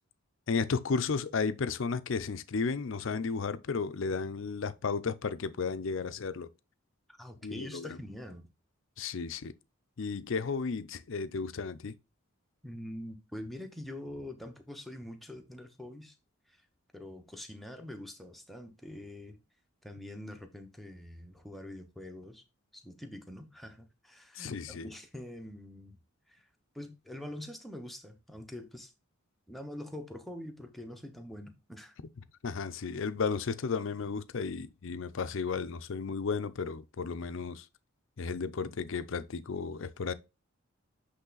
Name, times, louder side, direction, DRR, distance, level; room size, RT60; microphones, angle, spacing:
voice 1, 0.5-6.5 7.4-7.9 9.0-9.5 10.0-11.9 24.4-24.9 32.4-37.6 38.2-40.1, left 5 dB, 60° left, 0.5 m, -33 dB
voice 2, 7.1-8.5 12.6-16.1 16.5-16.6 16.9-19.4 19.8-22.4 22.7-26.0 26.3-26.4 26.7-28.9 29.5-32.0, left 1 dB, ahead, 0.8 m, -44 dB
8.0 x 3.4 x 3.9 m
head